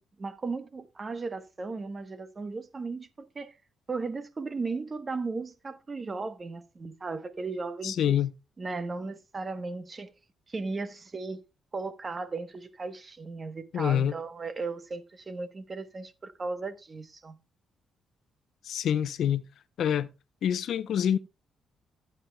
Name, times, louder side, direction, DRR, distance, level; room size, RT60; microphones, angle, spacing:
voice 1, 0.0-3.5 3.9-8.2 8.6-10.1 10.5-11.4 11.7-17.4, right 3 dB, 30° right, 1.1 m, -36 dB
voice 2, 7.8-8.3 13.7-14.1 18.6-19.4 19.8-20.1 20.4-21.2, left 9 dB, 70° left, 0.7 m, -26 dB
15.5 x 9.3 x 2.2 m
cardioid pair, 90°, 0 cm